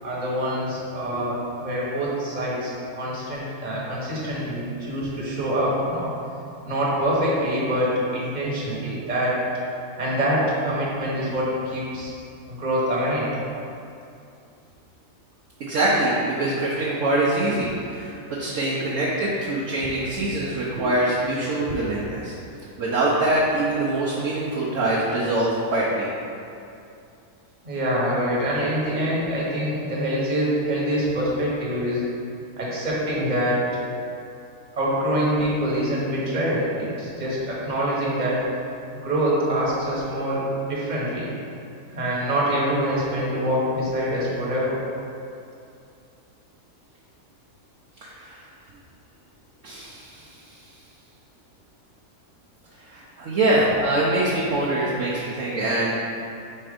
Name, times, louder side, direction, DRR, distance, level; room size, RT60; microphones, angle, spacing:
voice 1, 0.0-6.1 6.6-9.4 10.0-12.1 12.5-13.3 20.7-20.8 27.6-32.0 32.6-33.6 34.8-38.4 38.9-40.4 40.7-41.3 41.9-44.7, equal, 30° right, -6 dB, 1.2 m, -25 dB
voice 2, 15.6-22.3 22.8-26.1 28.5-28.6 48.0-48.4 49.6-50.6 52.9-56.0, right 1 dB, 60° right, -6 dB, 1.0 m, -24 dB
4.4 x 4.3 x 5.1 m, 2.6 s
omnidirectional pair, 1.7 m